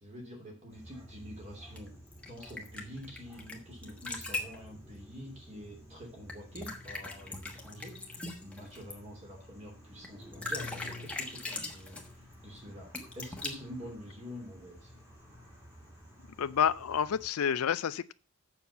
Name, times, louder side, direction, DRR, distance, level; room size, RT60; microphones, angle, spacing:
voice 1, 0.0-1.9 2.3-12.0 12.4-14.9, equal, 30° right, 2.9 m, -47 dB
sound 1, 0.7-17.3, left 1 dB, 10° right, 2.7 m, -52 dB
sound 2, 1.8-3.5 3.8-4.6 6.3-8.9 10.0-10.1 10.3-12.1 12.9-13.5, left 2 dB, 5° left, 1.2 m, -40 dB
voice 2, 16.4-18.1, left 8 dB, 80° left, 0.4 m, -29 dB
7.2 x 6.2 x 6.9 m
head